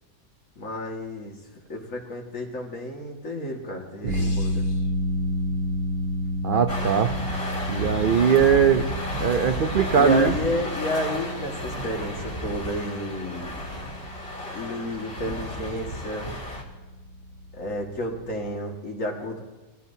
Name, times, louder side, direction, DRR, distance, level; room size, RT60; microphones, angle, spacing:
voice 1, 0.6-1.4 1.7-4.6 9.9-13.5 14.5-16.3 17.5-19.4, left 1 dB, 65° left, 0 dB, 2.3 m, -31 dB
voice 2, 4.0-4.6 6.4-7.1 7.7-8.9 9.2-10.4, right 7 dB, 60° right, 7 dB, 0.5 m, -21 dB
sound 1, 4.1-18.3, equal, 85° right, 1.6 m, -31 dB
sound 2, 6.7-16.6, equal, 40° left, 2.2 m, -33 dB
21.0 x 15.0 x 2.7 m, 1.2 s
omnidirectional pair, 1.5 m